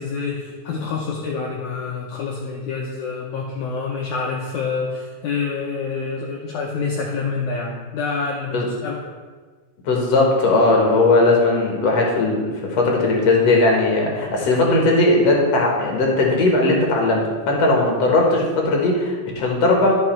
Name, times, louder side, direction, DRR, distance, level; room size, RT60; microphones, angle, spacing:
voice 1, 0.0-9.1, left 4 dB, 90° left, 0 dB, 1.7 m, -27 dB
voice 2, 9.8-19.9, left 2 dB, 60° left, 0 dB, 1.9 m, -18 dB
11.0 x 6.0 x 4.4 m, 1.4 s
omnidirectional pair, 4.4 m